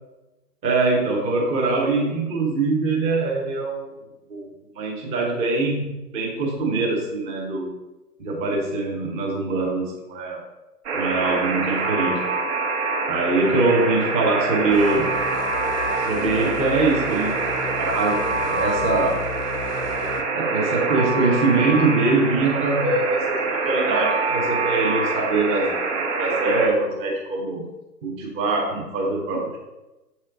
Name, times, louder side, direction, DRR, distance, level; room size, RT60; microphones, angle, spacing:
voice 1, 0.6-3.9 4.3-4.5 4.8-7.7 8.2-10.4 10.9-12.3 13.1-15.1 16.1-17.4 17.8-19.2 20.3-27.6 28.0-29.6, right 3 dB, 10° right, -1 dB, 0.9 m, -23 dB
Alarm, 10.9-26.7, right 4 dB, 45° right, 1.2 m, -25 dB
sound 1, 14.7-20.2, left 6 dB, 65° left, 0.9 m, -34 dB
7.5 x 4.4 x 3.6 m, 1.0 s
figure-of-eight pair, 125°, 50 cm